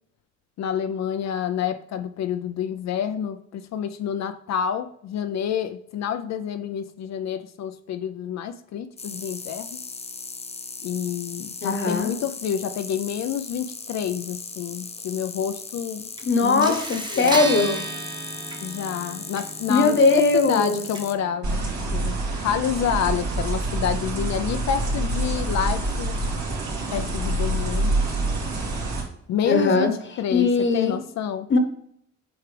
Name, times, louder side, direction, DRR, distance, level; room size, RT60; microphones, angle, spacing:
voice 1, 0.6-9.8 10.8-16.1 16.4-16.8 17.1-17.4 18.6-21.6 21.9-26.3 26.9-28.0 29.3-30.5 30.7-31.6, left 8 dB, 65° left, 0.5 m, -28 dB
sound 1, 9.0-21.1, left 4 dB, 20° left, 0.7 m, -38 dB
voice 2, 11.6-12.1 16.2-17.8 19.7-20.8 29.4-29.9 30.3-31.0 31.5-31.6, left 3 dB, 40° left, 1.0 m, -20 dB
sound 2, 16.2-16.3 16.6-21.6, right 2 dB, 15° right, 1.0 m, -34 dB
sound 3, 21.4-29.0, right 2 dB, 70° right, 2.4 m, -26 dB
7.9 x 4.8 x 3.3 m
cardioid pair, 90°, 30 cm